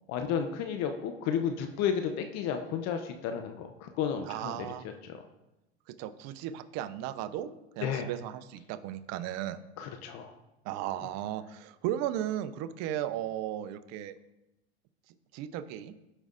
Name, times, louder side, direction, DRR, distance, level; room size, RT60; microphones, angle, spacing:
voice 1, 0.1-4.7 5.0-5.2 7.8-8.1 9.8-10.3, left 7 dB, 55° left, 6 dB, 0.8 m, -32 dB
voice 2, 4.3-4.9 5.9-9.6 10.6-14.1 15.3-15.9, right 11 dB, 55° right, 12 dB, 0.7 m, -35 dB
14.5 x 5.4 x 2.5 m, 0.94 s
hypercardioid pair, 95°, 32 cm